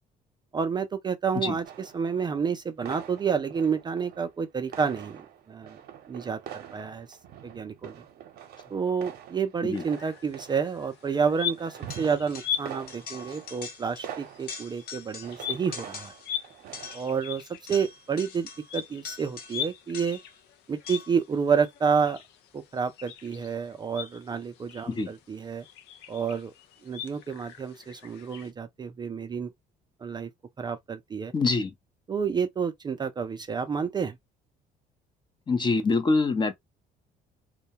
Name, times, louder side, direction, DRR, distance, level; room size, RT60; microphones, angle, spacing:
voice 1, 0.5-5.2 5.5-5.8 6.1-7.2 7.4-7.9 8.7-16.1 16.9-17.4 17.7-20.2 20.7-22.2 22.5-25.6 26.1-26.5 26.8-29.5 30.0-30.3 30.6-31.3 32.1-34.2, right 6 dB, 25° right, 0.3 m, -29 dB
sound 1, 1.6-2.6 2.8-4.4 4.6-17.0, right 10 dB, 70° right, 0.7 m, -45 dB
sound 2, 9.7-28.5, left 9 dB, 85° left, 0.5 m, -41 dB
sound 3, 11.9-12.6 12.9-14.1 14.4-15.4 15.7-16.3 16.7-20.4 20.9-21.2, left 6 dB, 65° left, 0.9 m, -43 dB
voice 2, 31.3-31.7 35.5-36.5, left 3 dB, 25° left, 0.6 m, -25 dB
2.2 x 2.1 x 2.7 m
cardioid pair, 110°, 17 cm